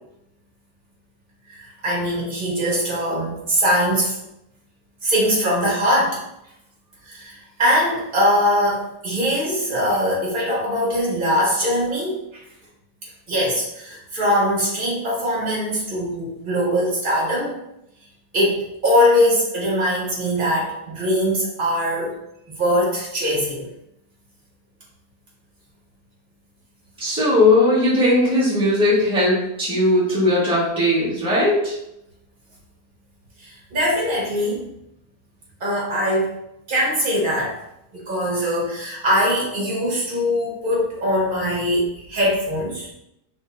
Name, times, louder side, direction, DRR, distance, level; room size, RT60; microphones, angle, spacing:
voice 1, 1.5-4.2 5.0-6.2 7.1-12.4 13.3-17.5 18.3-22.1 22.5-23.7 33.4-34.7 35.6-36.4 36.7-37.5 37.9-42.9, equal, 35° right, -4 dB, 1.4 m, -21 dB
voice 2, 27.0-31.7, left 1 dB, 5° right, -9 dB, 1.3 m, -18 dB
5.4 x 2.4 x 2.4 m, 0.82 s
omnidirectional pair, 1.5 m